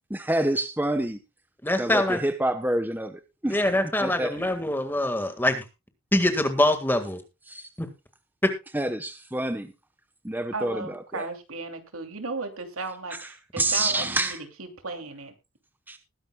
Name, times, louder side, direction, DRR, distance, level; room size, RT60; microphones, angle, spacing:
voice 1, 0.1-1.2 1.8-3.6 4.0-4.3 7.5-7.7 8.7-9.7 10.2-11.3 13.2-13.3 13.6-14.4 15.9-16.0, right 1 dB, 10° right, 0.9 m, -27 dB
voice 2, 1.6-2.2 3.5-5.6 6.1-7.2 7.8-7.9 8.4-8.5, left 1 dB, 10° left, 1.7 m, -24 dB
voice 3, 10.5-15.3, right 3 dB, 90° right, 2.7 m, -35 dB
20.0 x 10.5 x 2.3 m
head